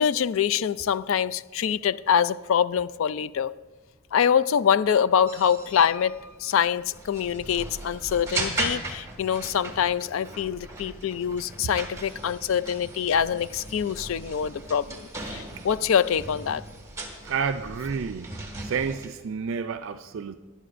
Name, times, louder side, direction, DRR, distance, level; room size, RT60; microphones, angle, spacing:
voice 1, 0.0-3.5 4.1-16.6, left 8 dB, 65° left, 0.3 m, -25 dB
sound 1, 5.3-19.1, right 2 dB, 15° right, 1.7 m, -38 dB
Piano, 5.8-7.8 8.4-9.1 9.4-9.5 9.7-9.8, left 2 dB, 45° left, 0.9 m, -47 dB
voice 2, 17.2-18.3 18.6-20.4, right 6 dB, 60° right, 0.4 m, -30 dB
18.5 x 11.0 x 2.5 m
head